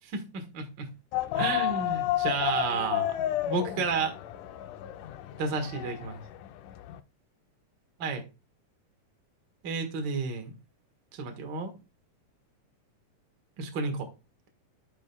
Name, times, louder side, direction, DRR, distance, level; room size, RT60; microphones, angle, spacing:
voice 1, 0.0-0.9 1.3-3.1 3.5-4.2 5.4-6.2 8.0-8.2 9.6-10.5 11.1-11.7 13.6-14.1, right 4 dB, 45° right, 4 dB, 1.7 m, -31 dB
sound 1, 1.1-7.0, left 13 dB, 90° left, 2.1 m, -32 dB
14.0 x 5.0 x 2.2 m, 0.29 s
omnidirectional pair, 3.6 m